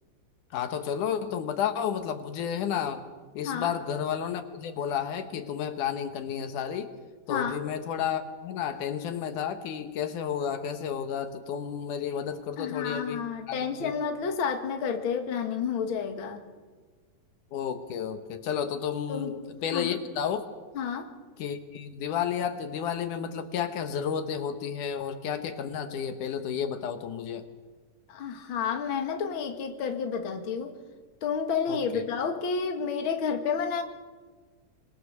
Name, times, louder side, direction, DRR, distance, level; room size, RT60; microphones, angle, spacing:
voice 1, 0.5-3.0 3.3-6.9 7.3-13.9 17.5-20.5 21.4-27.4 31.7-32.0, left 8 dB, 80° left, 8 dB, 2.7 m, -32 dB
voice 2, 7.3-7.6 12.6-16.4 19.1-19.4 19.7-20.0 20.7-21.1 28.1-30.7 31.2-33.8, left 6 dB, 45° left, 5 dB, 2.2 m, -30 dB
25.5 x 19.5 x 6.7 m, 1.4 s
omnidirectional pair, 3.5 m